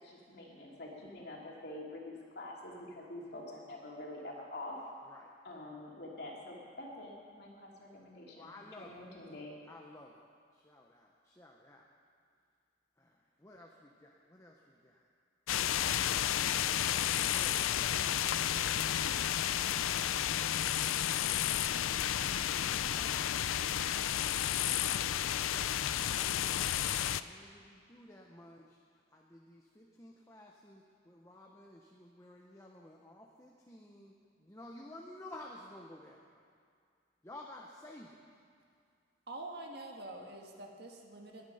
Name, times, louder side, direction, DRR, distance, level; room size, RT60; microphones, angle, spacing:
voice 1, 0.0-4.8 5.4-9.6, left 1 dB, 55° left, -3 dB, 2.9 m, -46 dB
voice 2, 8.3-9.1 9.7-10.3 10.5-11.9 13.0-15.1 17.0-28.8 29.1-36.5 37.2-38.2, left 1 dB, 15° left, -1 dB, 0.9 m, -54 dB
sound 1, 15.5-27.2, left 11 dB, 90° left, 0.4 m, -32 dB
voice 3, 39.3-41.4, right 2 dB, 55° right, 1 dB, 1.6 m, -46 dB
20.5 x 9.7 x 5.6 m, 2.2 s
head